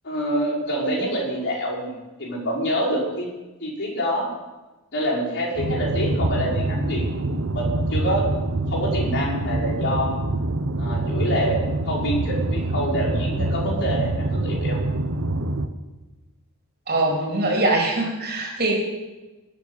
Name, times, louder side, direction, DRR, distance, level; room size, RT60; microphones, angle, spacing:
voice 1, 0.0-3.3 3.6-4.3 4.9-8.2 8.7-10.2 10.8-11.6 11.9-14.8, equal, 50° left, -6 dB, 6.0 m, -26 dB
sound 1, 5.6-15.7, right 2 dB, 60° right, 1.1 m, -25 dB
voice 2, 16.9-18.8, right 2 dB, 40° right, 1 dB, 3.5 m, -22 dB
21.0 x 7.6 x 7.4 m, 1.1 s
head